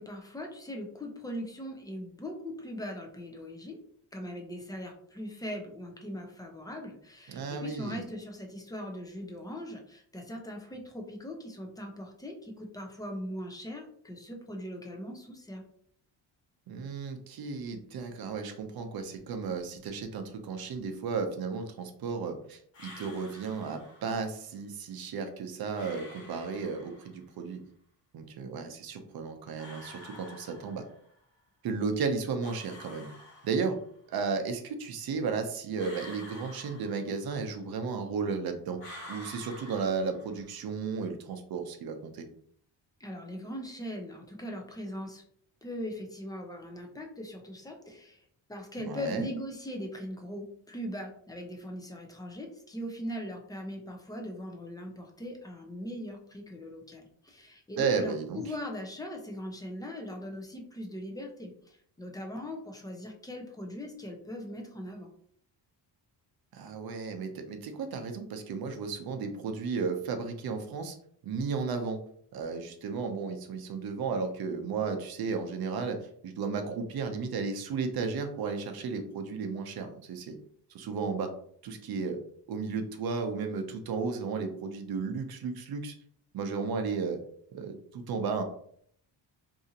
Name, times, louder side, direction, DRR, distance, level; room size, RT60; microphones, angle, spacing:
voice 1, 0.0-3.8 4.1-15.6 43.0-45.2 45.6-48.2 48.5-65.1, equal, 10° left, 2 dB, 0.4 m, -40 dB
voice 2, 7.3-8.0 16.7-27.6 28.1-30.8 31.6-33.1 33.4-33.8 34.1-38.8 39.1-42.2 48.8-49.3 57.8-58.4 66.5-71.0 71.2-72.0 72.3-76.0 76.2-80.4 80.7-81.3 81.6-82.2 82.5-85.9 86.3-87.2 87.5-88.4, right 5 dB, 60° right, 6 dB, 0.6 m, -34 dB
sound 1, 22.7-24.2 25.7-27.2 29.6-31.1 32.4-34.0 35.8-37.5 38.8-40.6, left 1 dB, 85° left, 1.2 m, -49 dB
2.7 x 2.4 x 2.7 m, 0.63 s
cardioid pair, 125°, 43 cm